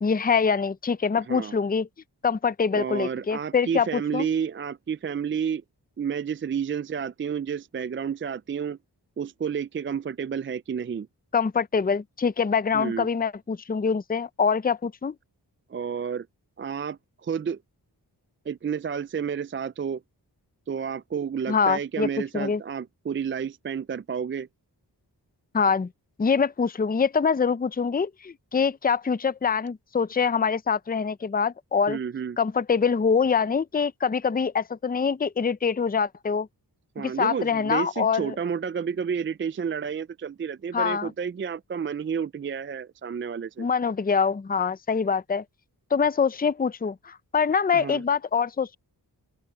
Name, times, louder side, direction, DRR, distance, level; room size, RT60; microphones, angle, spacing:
voice 1, 0.0-1.9 2.2-4.3 11.3-15.1 21.5-22.1 22.3-22.6 25.5-25.9 26.2-32.0 32.4-36.5 37.0-38.3 40.7-41.1 43.6-45.4 45.9-48.8, left 6 dB, 20° left, 0.5 m, -24 dB
voice 2, 2.7-5.6 6.0-8.8 9.2-11.1 12.7-13.1 15.7-16.3 16.6-17.6 18.5-20.0 20.7-24.5 31.9-32.4 37.0-43.7 47.7-48.0, right 7 dB, 30° right, 0.4 m, -30 dB
open air
wide cardioid pair, 65°, 40 cm